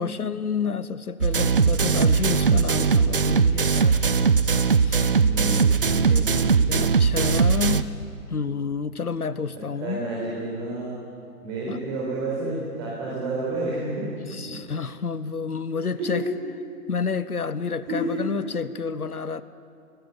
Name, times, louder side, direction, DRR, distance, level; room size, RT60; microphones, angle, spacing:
voice 1, 0.0-4.0 4.7-5.2 6.1-7.9 8.3-10.0 11.7-11.8 14.3-16.2 16.9-19.4, left 5 dB, 75° left, 15 dB, 1.0 m, -29 dB
sound 1, 1.2-7.8, right 5 dB, 35° right, 0.6 m, -20 dB
voice 2, 5.1-6.8 9.5-10.9 11.4-14.1 14.4-14.6 16.0-16.3 17.8-18.1, right 2 dB, 20° right, -5 dB, 4.5 m, -30 dB
21.5 x 20.5 x 8.7 m, 2.4 s
figure-of-eight pair, 140°, 45 cm